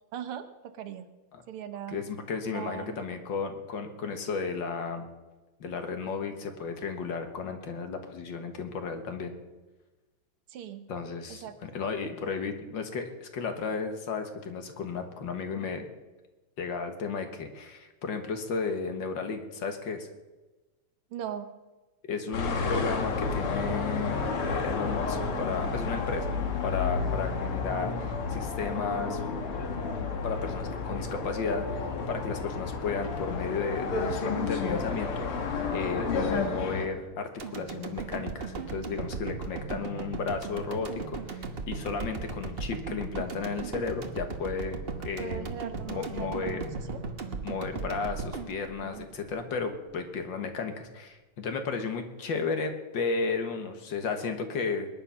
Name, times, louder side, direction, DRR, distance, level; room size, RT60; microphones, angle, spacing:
voice 1, 0.1-1.1 1.5-2.0 2.5-3.0 10.5-10.9 11.3-11.5 21.1-21.5 45.2-47.0 48.8-49.1, right 9 dB, 90° right, 9 dB, 2.0 m, -39 dB
voice 2, 1.9-5.1 5.6-9.3 10.9-15.9 16.6-20.1 22.1-26.3 26.6-29.2 30.2-35.3 35.7-44.8 45.0-45.5 45.9-46.6 47.4-54.9, left 5 dB, 60° left, 6 dB, 2.0 m, -33 dB
sound 1, 22.3-36.9, left 4 dB, 85° left, 2.5 m, -31 dB
sound 2, 37.4-49.6 50.0-50.1, right 4 dB, 35° right, 1.0 m, -37 dB
20.5 x 10.0 x 5.7 m, 1.2 s
omnidirectional pair, 2.4 m